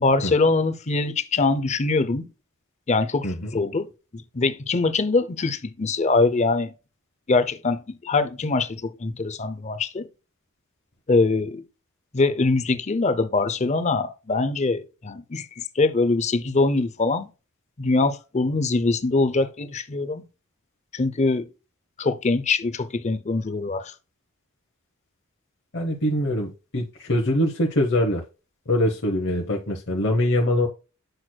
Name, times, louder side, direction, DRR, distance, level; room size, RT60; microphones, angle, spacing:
voice 1, 0.0-2.3 2.9-6.7 7.3-10.1 11.1-11.6 12.1-17.3 17.8-20.2 20.9-21.5 22.0-23.9, left 3 dB, 30° left, 0.5 m, -23 dB
voice 2, 25.7-28.2 28.7-30.7, left 1 dB, 50° left, 0.9 m, -23 dB
7.8 x 6.2 x 2.2 m
head